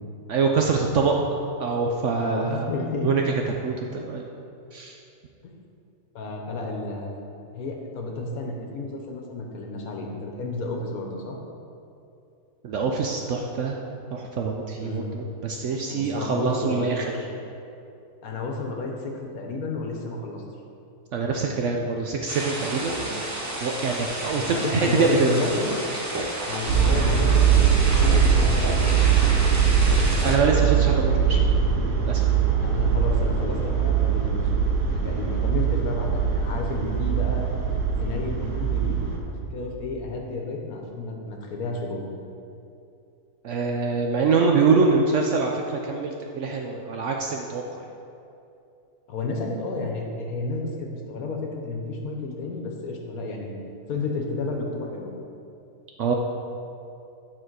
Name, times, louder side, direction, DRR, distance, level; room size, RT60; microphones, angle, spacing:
voice 1, 0.3-1.2 1.6-2.7 3.0-3.2 3.6-4.3 4.7-5.0 12.6-13.8 14.1-17.0 21.1-23.3 23.6-25.4 30.2-31.4 32.1-32.3 43.4-47.6 56.0-56.1, right 4 dB, 70° right, 1 dB, 0.7 m, -24 dB
voice 2, 2.2-3.1 5.4-5.5 6.1-7.2 7.5-11.4 14.8-15.1 15.9-17.3 18.2-20.4 24.4-25.7 26.4-28.7 32.5-34.5 34.9-37.5 38.0-42.1 49.1-53.5 53.9-55.1, left 3 dB, 70° left, 1 dB, 1.3 m, -31 dB
sound 1, 22.3-30.4, right 1 dB, 15° right, 0.6 m, -31 dB
sound 2, 26.7-39.2, right 7 dB, 85° right, 1.5 m, -21 dB
8.8 x 4.2 x 4.6 m, 2.7 s
omnidirectional pair, 1.6 m